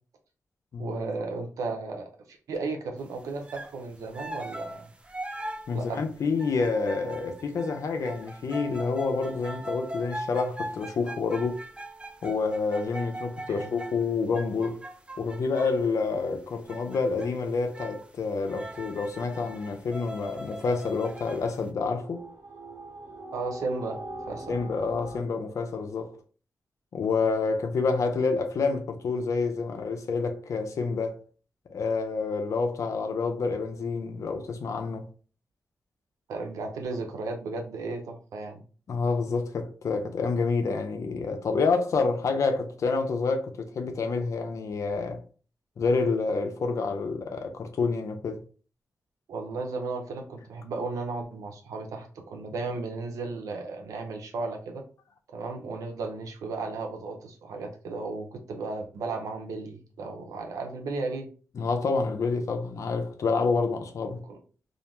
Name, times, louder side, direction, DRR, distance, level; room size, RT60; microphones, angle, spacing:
voice 1, 0.8-4.9 5.7-6.0 13.5-13.7 23.3-24.0 24.3-24.6 36.3-38.6 49.3-54.8 55.3-61.3 64.2-64.4, right 3 dB, 90° right, 0.5 m, -34 dB
sound 1, 3.4-3.8 4.1-15.9 16.7-17.3 17.7-18.1 18.4-21.6, right 1 dB, 20° right, 0.4 m, -40 dB
voice 2, 5.7-11.6 12.2-14.8 15.2-22.2 24.5-26.1 26.9-31.2 31.7-35.1 38.9-45.2 45.8-48.4 61.6-64.2, left 4 dB, 70° left, 0.5 m, -28 dB
sound 2, 21.9-25.2, right 1 dB, 40° right, 1.2 m, -42 dB
2.4 x 2.1 x 3.0 m
cardioid pair, 65°, 6 cm